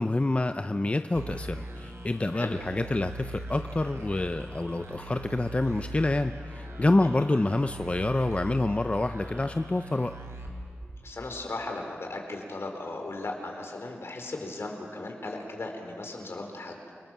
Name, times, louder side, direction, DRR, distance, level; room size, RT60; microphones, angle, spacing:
voice 1, 0.0-10.1, left 2 dB, 30° left, 9 dB, 0.7 m, -27 dB
sound 1, 1.1-11.4, right 1 dB, 80° right, 3.6 m, -41 dB
voice 2, 11.0-16.8, left 2 dB, 70° left, 3 dB, 4.1 m, -37 dB
29.5 x 19.5 x 7.4 m, 2.2 s
wide cardioid pair, 65°, 4 cm